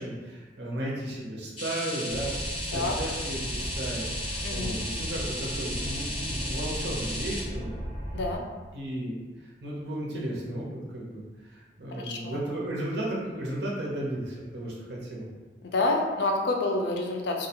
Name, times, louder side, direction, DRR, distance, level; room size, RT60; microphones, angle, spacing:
voice 1, 0.0-2.3 2.7-7.7 8.7-15.3, right 1 dB, 70° right, -4 dB, 0.7 m, -34 dB
sound 1, 1.6-7.4, left 1 dB, 35° left, 1.1 m, -35 dB
sound 2, 2.1-8.4, equal, 15° left, 0.6 m, -36 dB
voice 2, 4.4-4.8 8.1-8.4 12.0-12.4 15.6-17.5, left 2 dB, 70° left, 1 dB, 0.4 m, -28 dB
2.4 x 2.2 x 2.8 m, 1.3 s
head